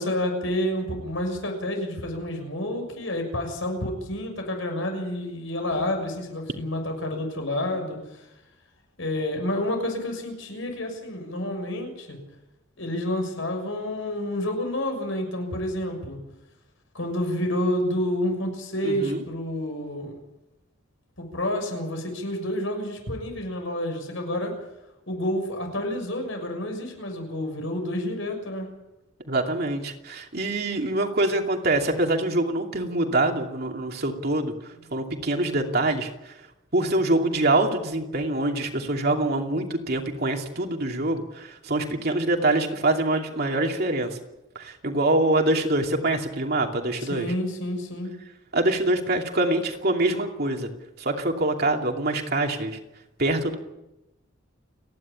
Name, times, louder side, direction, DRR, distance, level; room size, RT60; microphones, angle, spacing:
voice 1, 0.0-8.3 9.0-12.2 12.8-16.2 16.9-20.1 21.2-24.5 25.1-28.7 47.0-48.1, left 1 dB, 75° left, 4 dB, 6.6 m, -29 dB
voice 2, 18.8-19.2 29.3-34.5 34.9-36.3 36.7-44.2 44.5-47.3 48.5-50.7 51.0-52.8 53.2-53.6, right 2 dB, 50° right, 2 dB, 2.7 m, -25 dB
30.0 x 11.0 x 8.8 m, 0.95 s
head